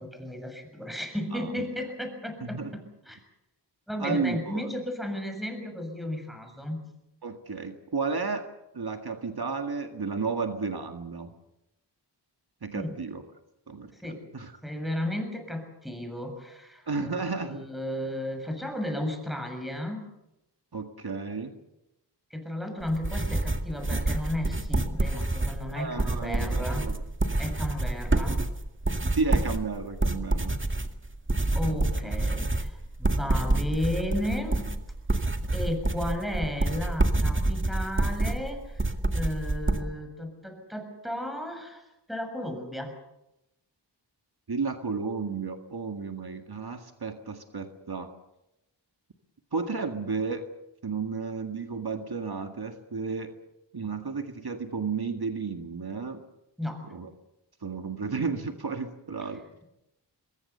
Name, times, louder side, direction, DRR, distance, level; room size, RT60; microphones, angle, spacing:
voice 1, 0.0-3.2 3.9-6.9 12.7-12.9 13.9-14.3 14.6-20.1 22.3-26.9 27.4-28.4 31.6-34.7 35.1-35.2 35.5-41.8 42.1-42.9 56.6-56.9, left 1 dB, ahead, 5 dB, 7.1 m, -34 dB
voice 2, 2.4-2.7 4.0-4.6 7.2-8.5 8.7-11.3 12.6-13.2 13.7-14.5 16.9-17.6 20.7-21.6 25.7-27.0 29.1-30.6 31.6-31.8 32.0-32.1 35.6-35.7 44.5-48.1 49.5-50.5 50.8-53.3 53.7-56.2 56.9-57.1 57.6-59.4, right 4 dB, 60° right, 5 dB, 1.9 m, -32 dB
sound 1, 22.8-39.8, right 2 dB, 30° right, 2.0 m, -27 dB
23.5 x 21.5 x 6.9 m, 0.91 s
wide cardioid pair, 55°, 43 cm